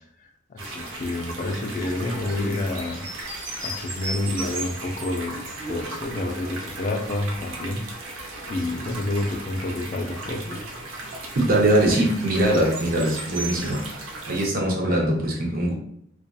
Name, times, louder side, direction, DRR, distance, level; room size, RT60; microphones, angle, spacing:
voice 1, 0.5-3.1 3.6-5.4 5.7-7.8 8.4-10.6 14.9-15.0, left 2 dB, 40° left, 0.3 m, -28 dB
sound 1, 0.6-14.4, right 2 dB, 85° right, 0.6 m, -36 dB
voice 2, 11.4-15.7, right 1 dB, 45° right, 0.6 m, -22 dB
2.7 x 2.2 x 2.2 m
head